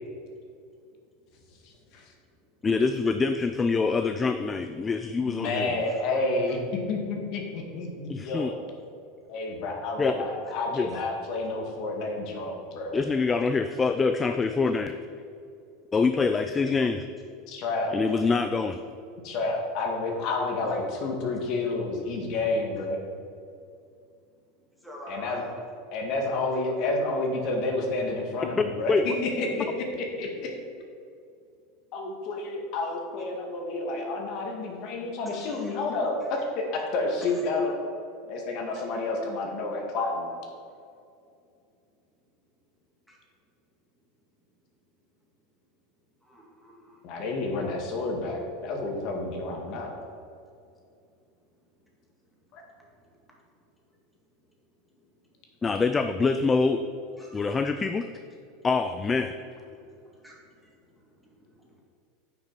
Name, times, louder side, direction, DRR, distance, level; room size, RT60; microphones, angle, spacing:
voice 1, 1.6-2.1 5.2-6.6 6.9-8.6 9.3-13.0 17.5-18.0 19.2-23.0 25.1-25.4 25.9-29.7 29.9-30.5 31.9-37.8 38.3-40.3 47.0-49.9 52.5-52.6, left 2 dB, 50° left, 1 dB, 1.7 m, -30 dB
voice 2, 2.6-5.7 8.1-8.5 10.0-10.1 10.8-10.9 12.9-15.0 15.9-17.1 17.9-18.8 28.9-29.1 55.6-56.8 57.3-58.0 58.6-59.3, left 4 dB, 15° left, 8 dB, 0.3 m, -25 dB
voice 3, 24.7-25.5 35.3-35.7 38.7-38.8 43.1-43.2 46.2-47.0 52.8-53.1 57.2-57.4 59.7-61.8, equal, ahead, -4 dB, 2.0 m, -48 dB
9.7 x 5.9 x 4.6 m, 2.5 s
supercardioid pair, 135°, 0 cm